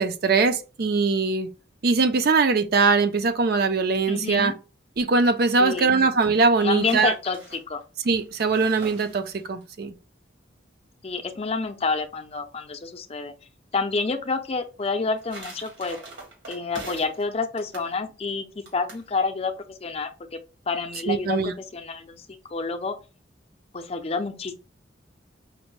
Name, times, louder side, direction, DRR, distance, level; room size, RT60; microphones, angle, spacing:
voice 1, 0.0-1.5 1.8-4.5 5.0-7.1 8.1-9.9 21.1-21.5, right 4 dB, 55° right, 0.5 m, -21 dB
voice 2, 4.1-4.5 5.6-5.9 6.6-7.8 11.0-13.3 13.7-16.0 16.5-18.5 18.7-19.5 19.8-20.4 20.7-22.2 22.5-23.0 23.7-24.6, left 4 dB, 30° left, 0.5 m, -28 dB
sound 1, 5.0-5.5 6.3-9.6 14.8-17.2 17.6-17.9 18.7-19.1, right 2 dB, 90° right, 2.0 m, -43 dB
5.1 x 2.2 x 3.1 m
head